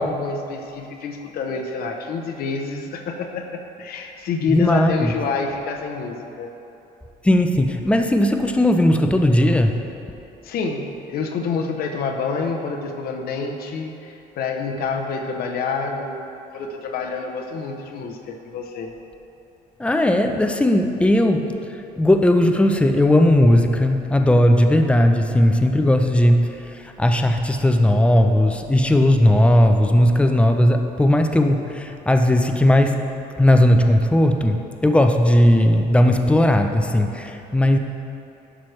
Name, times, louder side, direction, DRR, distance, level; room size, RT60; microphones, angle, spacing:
voice 1, 0.0-6.5 10.4-16.1 16.5-18.9, left 4 dB, 65° left, 3 dB, 0.8 m, -27 dB
voice 2, 4.5-5.1 7.2-9.7 19.8-21.5 22.0-33.0 33.4-34.6 34.8-37.8, left 1 dB, 5° left, 5 dB, 0.5 m, -17 dB
11.0 x 6.2 x 3.2 m, 2.8 s
cardioid pair, 110°, 17 cm